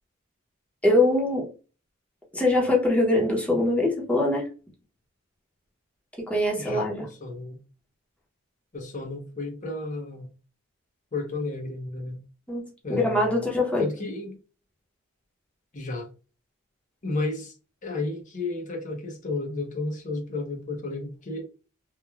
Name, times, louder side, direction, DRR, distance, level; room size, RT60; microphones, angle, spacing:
voice 1, 0.8-1.5 2.3-4.4 6.3-7.1 12.5-12.6 12.9-13.8, left 1 dB, 5° left, 0.8 m, -23 dB
voice 2, 6.6-7.6 8.7-10.3 11.1-12.2 12.8-13.5 13.8-14.4 15.7-16.1 17.0-17.5 17.8-21.4, left 2 dB, 40° left, 0.7 m, -32 dB
3.0 x 2.2 x 2.3 m
head